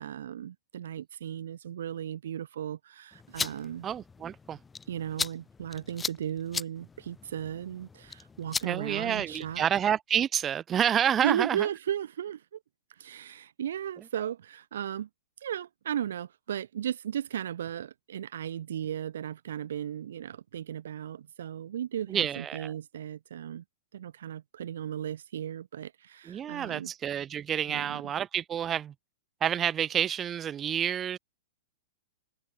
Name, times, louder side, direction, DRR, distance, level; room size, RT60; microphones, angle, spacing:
voice 1, 0.0-3.9 4.9-9.6 11.2-12.6 13.0-15.1 15.4-23.6 23.9-26.9 27.7-28.1, right 10 dB, 75° right, 0.9 m, -35 dB
sound 1, 3.1-9.6, left 5 dB, 15° left, 4.4 m, -39 dB
voice 2, 3.8-4.6 8.6-11.7 22.1-22.7 26.2-28.9 29.4-31.2, right 9 dB, 25° right, 1.0 m, -29 dB
hypercardioid pair, 130°, 0 cm